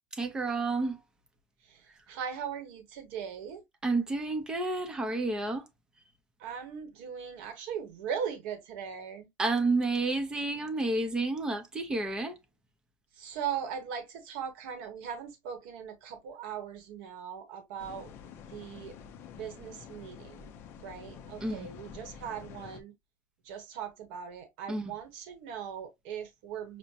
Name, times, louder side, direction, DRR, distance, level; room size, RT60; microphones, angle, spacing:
voice 1, 0.1-1.0 3.8-5.7 9.4-12.4 21.4-21.7 24.7-24.9, right 3 dB, 10° right, 0.6 m, -30 dB
voice 2, 1.6-3.6 6.4-9.3 13.1-18.1 18.5-19.0 19.4-22.9 23.4-26.8, right 8 dB, 75° right, 1.0 m, -39 dB
sound 1, 17.8-22.8, left 7 dB, 40° left, 0.6 m, -48 dB
6.2 x 2.1 x 2.7 m
cardioid pair, 170°, 6 cm